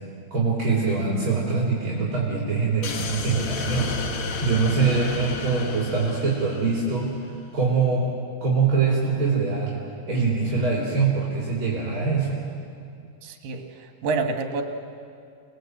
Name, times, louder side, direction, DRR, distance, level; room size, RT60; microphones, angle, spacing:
voice 1, 0.3-7.1 7.5-8.1 8.4-12.4, right 4 dB, 35° right, -5 dB, 3.7 m, -23 dB
sound 1, 2.8-7.2, left 4 dB, 60° left, 1.4 m, -32 dB
voice 2, 13.2-14.6, right 4 dB, 65° right, 4 dB, 3.1 m, -28 dB
28.5 x 20.5 x 7.9 m, 2.4 s
omnidirectional pair, 4.4 m